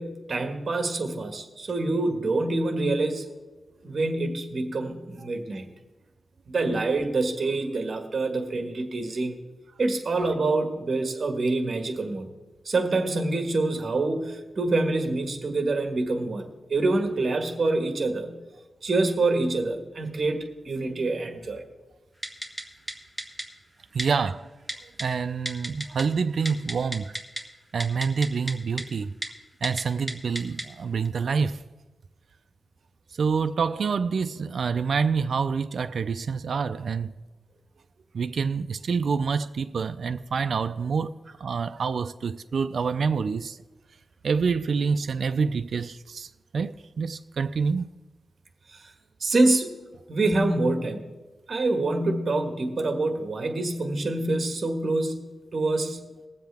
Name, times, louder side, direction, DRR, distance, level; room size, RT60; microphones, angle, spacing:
voice 1, 0.0-3.3 3.8-5.6 6.5-9.4 9.8-12.3 12.6-18.4 18.8-21.6 48.7-48.9 49.2-49.7 50.1-51.1 51.5-56.0, right 2 dB, 45° right, 1.6 m, -26 dB
Typing, 22.2-22.6 22.9-23.0 23.2-23.4 24.0-24.1 24.7-25.0 25.5-26.0 26.3-27.4 27.8-28.5 28.8-28.9 29.2-29.3 29.6-29.8 30.1-30.6 31.0-31.1, equal, 5° left, 1.4 m, -32 dB
voice 2, 23.9-24.5 25.0-27.1 27.7-29.1 29.6-31.6 33.2-37.1 38.1-41.1 41.4-43.6 44.2-47.9, right 5 dB, 65° right, 0.4 m, -27 dB
20.5 x 7.6 x 3.5 m
wide cardioid pair, 105°, 0 cm